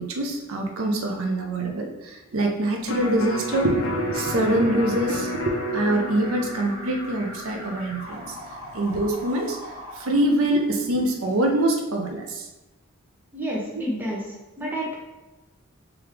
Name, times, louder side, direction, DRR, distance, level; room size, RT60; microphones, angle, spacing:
voice 1, 0.0-8.4 8.7-9.6 9.9-12.5, right 1 dB, 75° right, 2 dB, 0.6 m, -24 dB
Electric guitar, 2.9-9.1 9.5-9.6, left 2 dB, 65° left, 0.5 m, -33 dB
Alarm, 2.9-10.8, equal, 50° right, 1.5 m, -40 dB
voice 2, 13.3-14.2 14.6-14.9, equal, 10° right, -5 dB, 0.9 m, -29 dB
3.5 x 3.4 x 3.2 m, 1.1 s
head